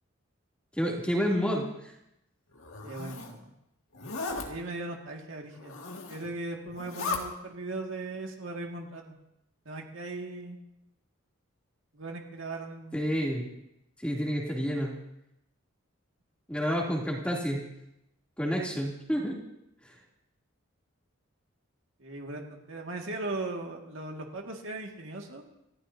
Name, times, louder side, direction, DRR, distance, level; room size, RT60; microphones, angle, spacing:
voice 1, 0.8-1.6 12.9-13.4 14.0-14.9 16.5-17.6 18.4-19.4 19.8-19.9, equal, 5° left, -3 dB, 2.9 m, -29 dB
Zipper (clothing), 2.6-3.3 3.9-4.5 5.6-6.3 6.7-7.2, left 4 dB, 80° left, 2.1 m, -36 dB
voice 2, 2.8-3.4 4.4-5.7 6.1-9.1 9.7-10.6 11.9-13.0 22.0-25.4, right 2 dB, 70° right, 1 dB, 2.1 m, -38 dB
28.0 x 14.5 x 2.8 m, 0.83 s
head